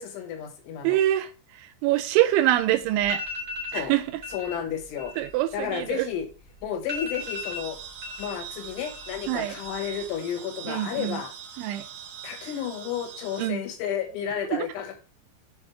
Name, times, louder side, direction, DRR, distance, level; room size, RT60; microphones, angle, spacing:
voice 1, 0.0-1.0 3.7-3.9 4.3-5.1 5.5-6.3 6.6-7.8 8.2-11.3 12.2-14.9, left 8 dB, 80° left, 3.7 m, -32 dB
voice 2, 0.8-3.2 3.7-4.2 5.2-6.1 9.3-9.6 10.7-11.2 11.6-11.9 12.4-12.5 13.4-13.6 14.5-14.7, right 13 dB, 85° right, 2.8 m, -25 dB
sound 1, 3.0-3.9 4.2-4.5 4.8-6.3 6.6-6.7 6.9-8.3 8.6-9.2 9.5-10.1, left 3 dB, 20° right, 3.7 m, -36 dB
sound 2, 7.2-13.5, right 9 dB, 50° right, 3.2 m, -42 dB
7.6 x 6.3 x 3.5 m
omnidirectional pair, 5.6 m